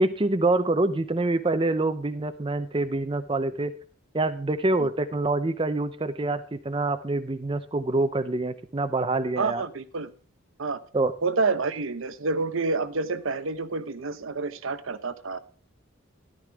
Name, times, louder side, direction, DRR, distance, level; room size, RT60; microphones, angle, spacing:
voice 1, 0.0-3.7 4.1-9.6 10.9-11.1, right 2 dB, 25° right, 10 dB, 0.5 m, -26 dB
voice 2, 9.4-10.1 10.6-10.8 11.2-15.4, right 3 dB, 75° right, 12 dB, 0.8 m, -28 dB
13.5 x 11.5 x 3.4 m, 0.40 s
head